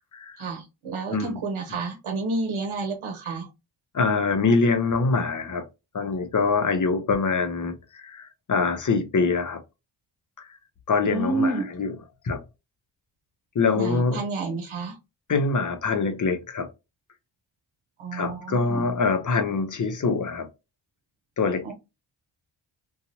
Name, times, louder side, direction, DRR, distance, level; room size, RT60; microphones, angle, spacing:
voice 1, 0.4-3.5 11.0-11.7 13.7-15.0 18.0-18.9 21.6-21.7, right 3 dB, 85° right, 0.9 m, -30 dB
voice 2, 1.1-1.4 3.9-5.7 5.9-9.6 10.4-10.6 10.9-11.9 12.2-12.4 13.5-14.2 15.3-16.7 18.1-20.5 21.4-21.7, left 4 dB, 40° left, 0.7 m, -24 dB
2.9 x 2.3 x 2.6 m
cardioid pair, 85°, 48 cm